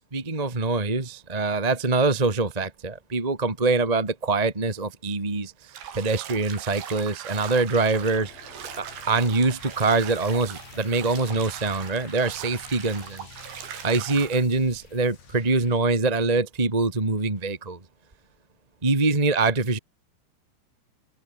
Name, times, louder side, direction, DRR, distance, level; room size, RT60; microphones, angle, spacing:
voice 1, 0.1-5.5 5.9-8.3 8.8-13.3 13.8-17.8 18.8-19.8, right 3 dB, 20° right, 1.0 m, -24 dB
Bathtub (filling or washing), 5.7-14.5, right 9 dB, 65° right, 4.8 m, -40 dB
sound 1, 8.0-15.8, left 6 dB, 75° left, 8.0 m, -48 dB
omnidirectional pair, 5.3 m